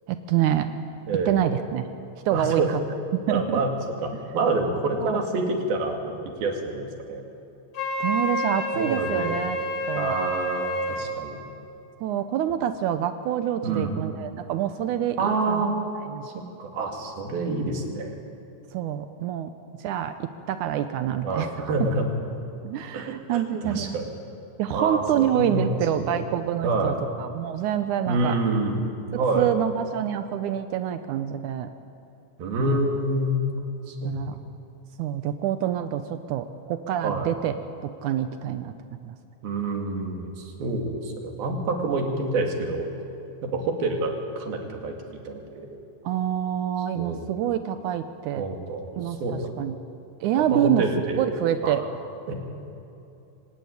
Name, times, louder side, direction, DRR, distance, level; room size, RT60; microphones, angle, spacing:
voice 1, 0.1-0.7 1.3-1.9 2.3-2.8 3.1-3.6 5.0-5.2 8.0-9.6 9.9-10.2 12.0-15.6 16.1-16.3 17.3-17.6 18.7-19.5 19.8-21.5 22.6-24.0 24.6-28.4 29.4-31.7 32.7-32.8 34.0-34.4 35.0-37.5 37.8-39.2 46.0-48.5 48.9-49.8 50.2-50.8 51.2-51.8, right 10 dB, 90° right, 9 dB, 1.7 m, -27 dB
voice 2, 1.1-1.4 2.3-2.7 3.3-3.7 4.0-6.0 6.4-7.2 8.7-9.4 10.0-11.4 13.6-13.9 15.2-15.8 16.2-18.1 21.2-22.1 22.9-24.0 24.7-26.1 26.6-26.9 28.1-28.8 29.1-29.5 32.4-33.4 33.9-34.4 37.0-37.3 39.4-42.9 43.4-45.0 45.3-45.7 46.9-47.3 48.4-48.9 49.2-49.5 50.5-51.3 51.6-51.8 52.3-52.4, right 2 dB, 65° right, 2 dB, 4.2 m, -27 dB
Wind instrument woodwind instrument, 7.7-11.1, equal, 30° left, 4.5 m, -29 dB
24.0 x 19.0 x 9.5 m, 2.7 s
omnidirectional pair, 4.6 m